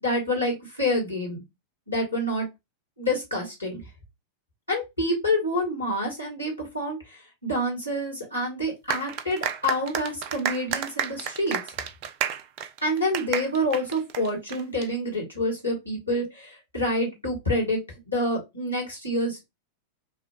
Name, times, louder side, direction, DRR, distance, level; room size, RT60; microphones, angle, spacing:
voice 1, 0.0-1.4 1.9-2.5 3.0-3.8 4.7-11.6 12.8-17.8 18.1-19.4, left 1 dB, 80° left, -1 dB, 1.8 m, -27 dB
sound 1, 8.9-14.9, right 9 dB, 45° right, 0.5 m, -31 dB
5.4 x 2.2 x 2.4 m, 0.21 s
figure-of-eight pair, 90°, 0 cm